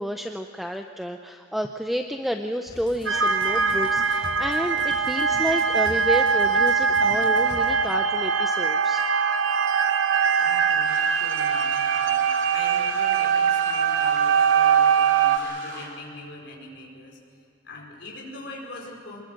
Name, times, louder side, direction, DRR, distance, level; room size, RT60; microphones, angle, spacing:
voice 1, 0.0-9.0 9.7-10.4, equal, ahead, 5 dB, 0.7 m, -30 dB
sound 1, 2.7-7.7, equal, 25° left, 3.8 m, -43 dB
sound 2, 3.1-15.4, right 6 dB, 65° right, 1.0 m, -22 dB
voice 2, 10.4-12.2 12.5-17.2 17.6-19.2, left 2 dB, 60° left, -1 dB, 5.0 m, -42 dB
sound 3, 10.8-15.9, right 2 dB, 45° right, 4.5 m, -39 dB
25.0 x 21.0 x 6.6 m, 2.5 s
head